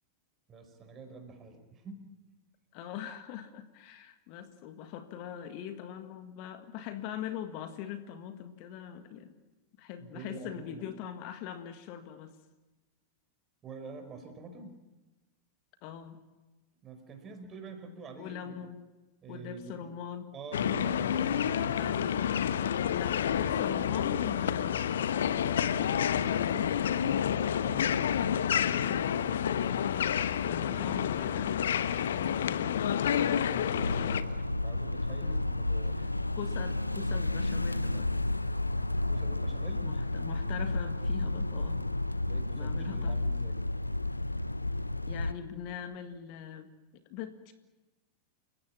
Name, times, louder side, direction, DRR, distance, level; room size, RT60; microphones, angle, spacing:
voice 1, 0.5-2.1 10.0-10.8 13.6-14.8 16.8-18.6 19.2-19.8 20.3-21.9 22.5-23.6 27.1-28.0 30.5-30.9 32.8-36.1 39.1-39.9 42.2-43.6, right 4 dB, 25° right, 7 dB, 5.1 m, -47 dB
voice 2, 2.7-9.3 9.8-12.4 15.8-16.2 18.2-18.8 19.3-20.3 21.8-22.1 22.8-26.8 28.8-29.2 30.4-32.5 35.2-35.5 36.0-36.1 36.4-38.1 39.8-41.9 42.5-43.2 45.1-47.5, left 9 dB, 45° left, 9 dB, 1.8 m, -42 dB
sound 1, 20.5-34.2, left 9 dB, 65° left, 1.0 m, -29 dB
sound 2, 33.8-45.3, left 2 dB, 85° left, 0.8 m, -31 dB
29.0 x 17.0 x 9.9 m, 1.1 s
figure-of-eight pair, 90°, 0 cm